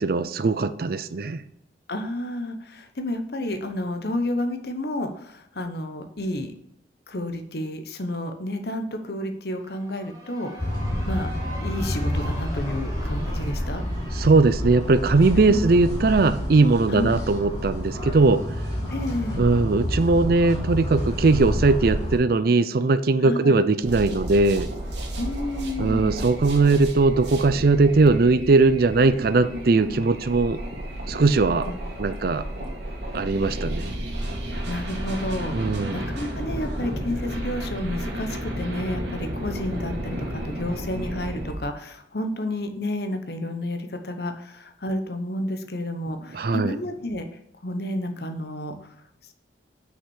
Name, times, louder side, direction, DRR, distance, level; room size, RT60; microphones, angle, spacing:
voice 1, 0.0-1.4 14.1-18.4 19.4-24.7 25.8-30.6 31.1-31.7 32.0-32.4 33.1-33.9 35.5-36.0 46.3-46.7, right 3 dB, 55° right, 13 dB, 0.4 m, -20 dB
voice 2, 1.9-6.5 7.1-10.6 11.1-11.3 11.6-13.8 15.3-15.7 16.9-17.1 18.9-19.4 23.2-23.6 25.2-26.2 31.6-31.8 34.7-47.3 47.6-48.9, left 1 dB, 55° left, 7 dB, 1.0 m, -30 dB
sound 1, 9.5-16.3, equal, 20° right, 2.6 m, -43 dB
sound 2, 10.6-22.2, left 1 dB, 25° left, 3.6 m, -29 dB
sound 3, 23.8-41.5, right 1 dB, 70° right, 2.2 m, -32 dB
6.0 x 5.7 x 6.3 m, 0.76 s
head